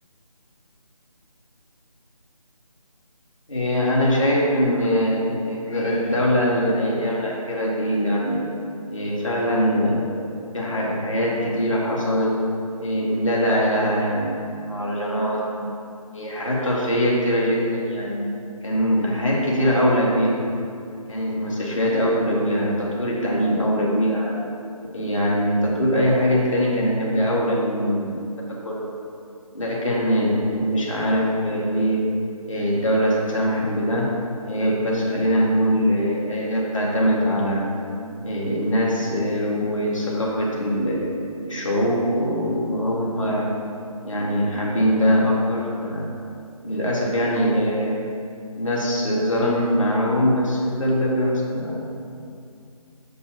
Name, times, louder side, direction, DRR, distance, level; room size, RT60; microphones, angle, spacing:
voice 1, 3.5-8.5 8.9-10.3 10.5-12.4 12.8-14.4 14.7-15.7 16.1-18.3 18.6-20.5 21.1-24.3 24.9-28.2 28.5-28.9 29.5-32.1 32.5-34.1 34.4-37.7 38.2-41.1 41.5-43.5 44.0-46.1 46.6-48.0 48.6-51.8, equal, 55° left, -4 dB, 2.5 m, -22 dB
6.8 x 6.7 x 6.9 m, 2.4 s
figure-of-eight pair, 160°, 19 cm